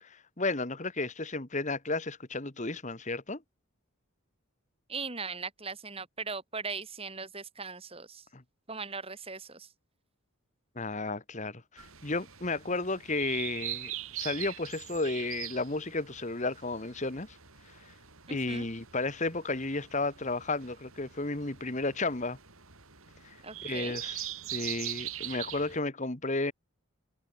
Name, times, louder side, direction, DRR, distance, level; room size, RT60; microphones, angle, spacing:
voice 1, 0.4-3.4 8.3-8.4 10.7-17.4 18.3-22.4 23.2-23.3 23.6-26.5, left 2 dB, 35° left, 1.6 m, -33 dB
voice 2, 4.9-8.2 8.7-9.7 18.3-18.7 23.4-24.0, right 4 dB, 25° right, 5.4 m, -39 dB
sound 1, 11.8-25.8, right 13 dB, 80° right, 5.1 m, -42 dB
head